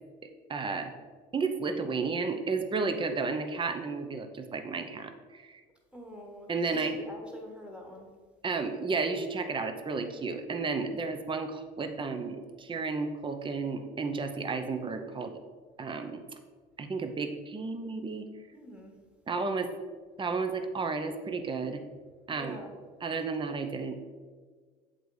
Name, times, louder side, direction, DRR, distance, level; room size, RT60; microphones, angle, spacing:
voice 1, 0.5-0.9 1.3-5.6 6.5-7.0 8.4-15.3 15.8-16.2 16.8-18.2 19.3-19.7 20.2-21.8 22.3-22.6 23.0-24.0, right 4 dB, 25° right, 7 dB, 0.7 m, -32 dB
voice 2, 5.9-8.1 18.5-18.9 22.3-22.7, equal, 5° right, 1 dB, 1.6 m, -45 dB
7.7 x 4.1 x 4.8 m, 1.5 s
supercardioid pair, 85°, 19 cm